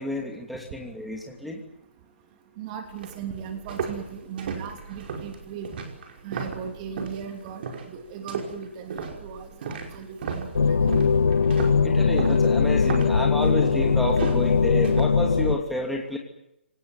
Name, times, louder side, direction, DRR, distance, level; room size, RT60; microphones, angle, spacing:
voice 1, 0.0-1.6 11.8-16.2, left 1 dB, ahead, -1 dB, 2.8 m, -30 dB
voice 2, 2.6-5.7 6.2-10.8, right 7 dB, 30° right, 5 dB, 3.1 m, -38 dB
sound 1, 2.9-7.2 7.6-7.9 8.3-15.0, right 5 dB, 50° right, 5.5 m, -35 dB
sound 2, 10.5-15.6, left 5 dB, 80° left, 1.4 m, -20 dB
26.0 x 19.0 x 9.3 m, 0.84 s
hypercardioid pair, 145°, 7 cm